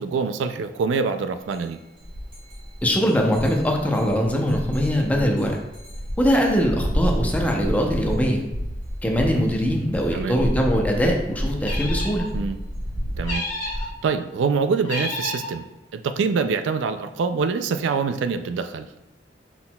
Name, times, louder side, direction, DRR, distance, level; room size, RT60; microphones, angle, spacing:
voice 1, 0.0-1.8 10.1-10.4 12.3-12.6 13.2-13.4 14.0-15.6 15.9-18.9, right 5 dB, 85° right, 10 dB, 0.3 m, -25 dB
sound 1, 1.5-1.6 2.0-13.8, equal, 30° right, 1.6 m, -30 dB
voice 2, 2.8-5.6 6.2-8.4 9.0-12.3, equal, 10° left, 1 dB, 0.6 m, -22 dB
sound 2, 11.6-12.3 13.2-13.9 14.8-15.5, left 2 dB, 45° left, 1.6 m, -30 dB
5.7 x 4.1 x 2.2 m, 0.99 s
head